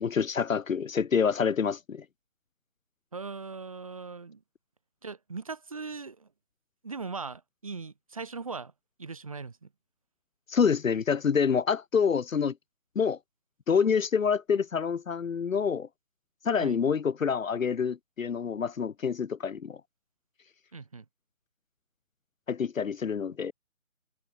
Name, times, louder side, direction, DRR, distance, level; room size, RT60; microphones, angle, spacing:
voice 1, 0.0-2.0 10.5-12.5 13.0-13.2 13.7-15.9 16.4-19.8 22.5-23.5, left 6 dB, 70° left, 0.8 m, -27 dB
voice 2, 3.1-4.4 5.0-6.3 6.8-8.7 9.0-9.7 16.6-16.8 20.7-21.1, right 4 dB, 25° right, 1.8 m, -39 dB
figure-of-eight pair, 175°, 41 cm